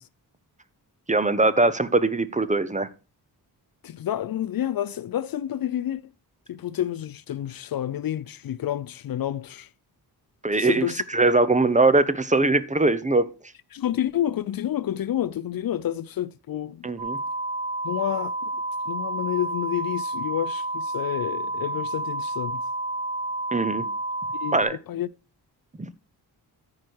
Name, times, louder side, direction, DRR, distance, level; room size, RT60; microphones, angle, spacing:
voice 1, 1.1-2.9 10.4-10.9 11.1-13.3 16.8-17.2 23.5-23.9 24.5-24.8 25.8-25.9, right 3 dB, 20° right, 0.8 m, -21 dB
voice 2, 3.8-6.0 6.5-9.7 10.6-11.0 13.7-16.9 17.8-18.5 18.9-22.6 24.4-25.1, left 11 dB, 60° left, 0.5 m, -29 dB
sound 1, 17.0-24.6, right 2 dB, 90° right, 3.0 m, -30 dB
14.0 x 4.9 x 4.6 m
cardioid pair, 80°, 39 cm